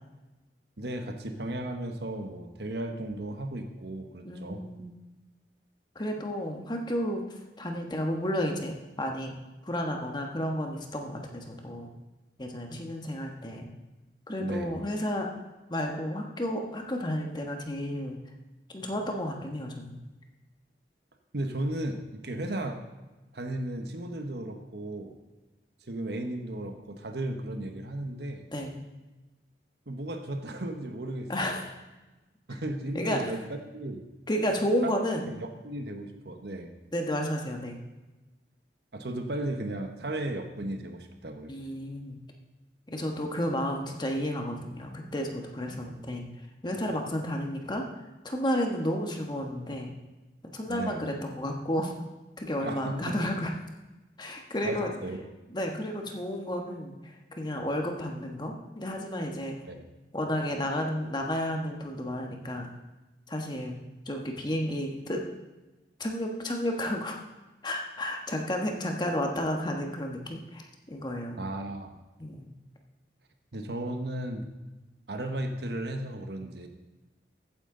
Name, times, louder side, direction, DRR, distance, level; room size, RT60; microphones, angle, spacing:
voice 1, 0.8-4.6 14.4-14.8 21.3-22.9 23.3-25.2 25.9-28.4 29.9-31.6 32.5-33.4 33.7-34.0 34.8-35.0 35.4-36.7 38.9-41.6 45.8-46.0 50.7-51.0 52.6-53.2 54.6-55.2 59.7-59.8 71.4-71.9 73.5-74.5 75.1-76.7, right 1 dB, 65° right, 6 dB, 1.2 m, -35 dB
voice 2, 4.2-4.9 5.9-7.2 7.6-9.3 9.6-11.9 12.4-13.7 14.3-15.3 15.7-18.2 18.7-20.0 28.5-28.8 31.3-31.7 32.9-33.4 34.3-35.3 36.9-37.8 41.5-42.2 42.9-46.3 46.6-47.9 48.2-49.9 50.4-51.9 52.4-53.5 54.2-54.9 55.5-59.6 60.1-62.7 63.3-63.8 64.0-65.2 66.0-67.2 67.6-71.4 72.2-72.5, equal, 25° left, 2 dB, 1.4 m, -32 dB
14.5 x 9.6 x 3.9 m, 1.1 s
head